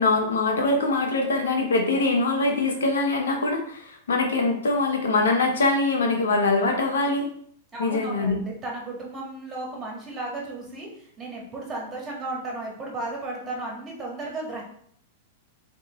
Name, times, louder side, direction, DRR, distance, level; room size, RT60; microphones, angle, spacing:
voice 1, 0.0-7.3 7.8-8.4, left 3 dB, 80° left, 3 dB, 0.9 m, -23 dB
voice 2, 7.7-10.9 11.2-14.6, right 2 dB, 25° right, -1 dB, 1.5 m, -34 dB
3.4 x 3.2 x 3.1 m, 0.62 s
hypercardioid pair, 105°, 0 cm